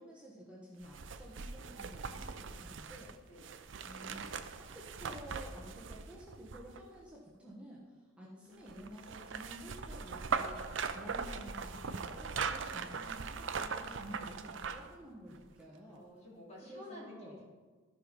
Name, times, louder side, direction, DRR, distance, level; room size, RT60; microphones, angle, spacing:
voice 1, 0.0-3.1 3.8-16.0 16.6-17.4, equal, 5° right, -5 dB, 1.2 m, -51 dB
sound 1, 0.8-7.0 8.7-15.0 15.3-15.4, right 5 dB, 65° right, 0.6 m, -40 dB
voice 2, 8.3-8.8 15.9-17.4, left 1 dB, 35° left, -4 dB, 2.7 m, -52 dB
14.0 x 5.3 x 5.3 m, 1.4 s
head